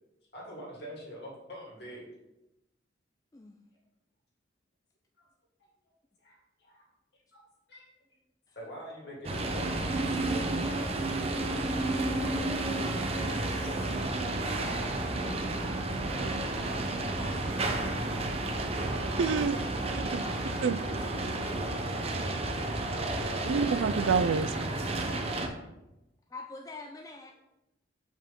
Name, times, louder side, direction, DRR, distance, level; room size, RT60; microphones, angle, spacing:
voice 1, 0.3-2.1 5.2-5.3 6.2-6.9 7.3-7.4 7.7-7.8 8.6-11.5 11.9-13.0 13.3-14.2 15.2-15.8 22.9-24.5, equal, 55° left, -4 dB, 2.5 m, -45 dB
sound 1, 9.2-25.5, right 2 dB, 30° right, 0.7 m, -31 dB
voice 2, 14.0-14.4 17.0-17.9 26.3-27.3, left 3 dB, 20° left, 2 dB, 0.4 m, -46 dB
voice 3, 19.2-19.6 19.8-20.8 23.5-24.5, right 5 dB, 85° right, 13 dB, 0.4 m, -28 dB
7.4 x 5.2 x 3.7 m, 0.94 s
head